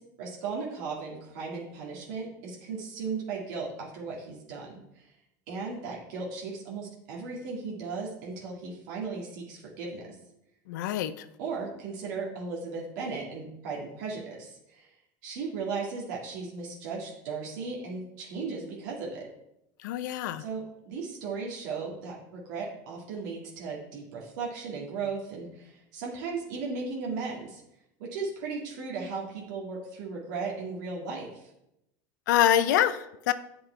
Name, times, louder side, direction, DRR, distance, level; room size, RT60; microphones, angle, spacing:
voice 1, 0.2-5.1 5.5-10.0 11.4-14.9 15.2-19.3 20.4-27.6 28.1-31.5, right 4 dB, 80° right, -3 dB, 1.9 m, -36 dB
voice 2, 10.7-11.3 19.8-20.4 32.3-33.3, left 11 dB, 90° left, 13 dB, 0.6 m, -25 dB
8.0 x 5.2 x 4.4 m, 0.84 s
supercardioid pair, 135°, 10 cm